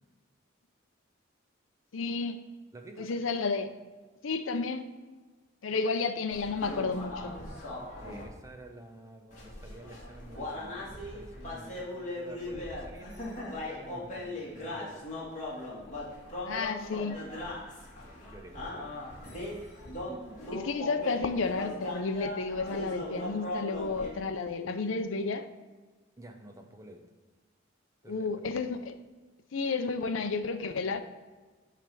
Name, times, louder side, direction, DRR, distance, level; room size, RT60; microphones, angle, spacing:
voice 1, 1.9-2.4 3.0-3.7 4.2-4.9 5.6-7.4 16.4-17.2 20.5-25.5 28.1-29.0 29.5-31.0, left 4 dB, 80° left, 9 dB, 0.6 m, -31 dB
voice 2, 2.7-3.2 8.0-15.1 17.7-18.9 19.2-19.8 20.1-20.4 26.2-27.0 28.0-28.3, right 1 dB, 15° right, 4 dB, 0.7 m, -50 dB
sound 1, 6.3-8.2 9.3-24.1, left 1 dB, 40° left, 1.9 m, -39 dB
9.2 x 3.4 x 6.1 m, 1.3 s
head